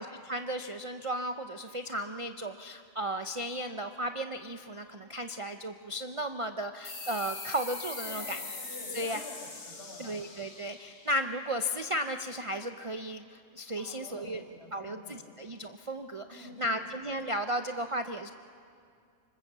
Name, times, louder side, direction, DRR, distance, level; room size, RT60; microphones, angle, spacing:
voice 1, 0.0-8.4 8.9-9.2 10.0-14.4 14.7-16.3 16.6-18.3, equal, 35° right, 7 dB, 0.5 m, -35 dB
sound 1, 6.8-12.0, left 3 dB, 85° left, 2.6 m, -42 dB
voice 2, 8.0-10.2 13.8-15.2 16.3-16.7, left 2 dB, 50° left, -2 dB, 6.4 m, -48 dB
25.5 x 25.5 x 7.3 m, 2.3 s
omnidirectional pair, 1.4 m